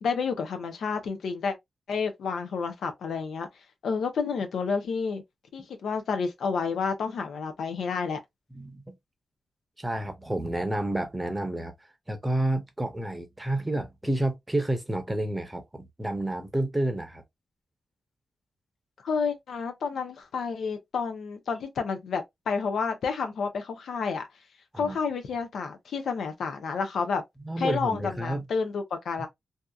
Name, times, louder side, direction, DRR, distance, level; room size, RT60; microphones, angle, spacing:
voice 1, 0.0-1.5 1.9-3.5 3.8-5.2 5.5-8.2 19.0-24.3 24.8-27.2 27.6-29.3, left 5 dB, 85° left, 0.6 m, -30 dB
voice 2, 8.5-8.9 9.8-11.7 12.1-17.2 24.7-25.0 27.4-28.5, right 1 dB, 10° right, 0.7 m, -30 dB
2.7 x 2.3 x 2.3 m
wide cardioid pair, 105°, 0 cm